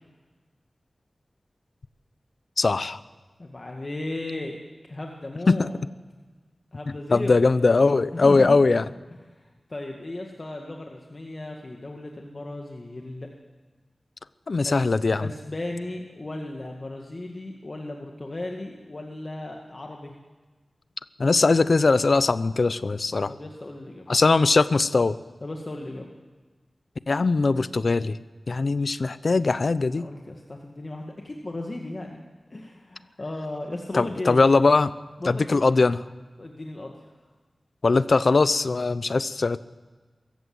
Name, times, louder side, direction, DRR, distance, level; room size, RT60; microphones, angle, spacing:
voice 1, 2.6-3.0 5.5-5.7 7.1-8.8 14.5-15.3 21.2-23.3 24.1-25.2 27.1-28.2 28.5-30.1 33.9-34.9 35.3-36.0 37.8-39.6, left 3 dB, 60° left, 15 dB, 0.7 m, -20 dB
voice 2, 3.4-4.6 4.9-5.8 6.7-7.4 8.1-8.6 9.3-13.3 14.6-20.1 23.3-24.1 25.4-26.1 29.9-32.2 32.5-34.4 35.2-35.6 36.4-37.1, left 2 dB, 40° left, 1 dB, 2.0 m, -35 dB
23.0 x 15.0 x 7.9 m, 1.3 s
wide cardioid pair, 80°, 0 cm